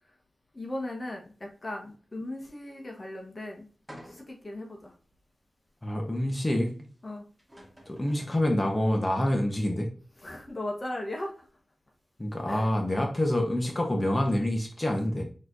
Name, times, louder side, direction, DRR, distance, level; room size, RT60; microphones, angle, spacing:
voice 1, 0.5-3.7 4.0-4.9 7.0-7.3 10.2-11.5 12.5-12.7, left 1 dB, 45° left, 1 dB, 1.3 m, -37 dB
sound 1, 3.9-4.5 5.1-5.2 7.0-7.1 7.4-8.6, equal, 15° right, 2.1 m, -50 dB
voice 2, 5.8-6.9 7.8-9.9 12.2-15.2, left 1 dB, 25° left, 1 dB, 1.2 m, -27 dB
4.1 x 3.3 x 3.9 m, 0.39 s
cardioid pair, 40°, 0 cm